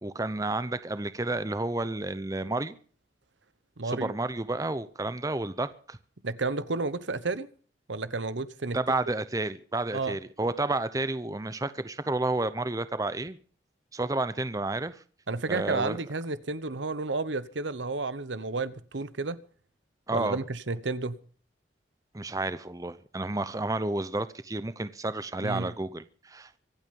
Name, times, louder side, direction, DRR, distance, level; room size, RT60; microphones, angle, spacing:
voice 1, 0.0-2.7 3.8-6.0 8.7-13.4 13.9-15.0 15.5-16.0 20.1-20.4 22.1-26.6, right 2 dB, 20° right, 0.7 m, -31 dB
voice 2, 3.8-4.1 6.2-7.5 7.9-8.8 9.9-10.2 15.3-19.4 20.1-21.2 25.4-25.7, right 3 dB, 80° right, 1.0 m, -31 dB
24.5 x 8.7 x 5.4 m
head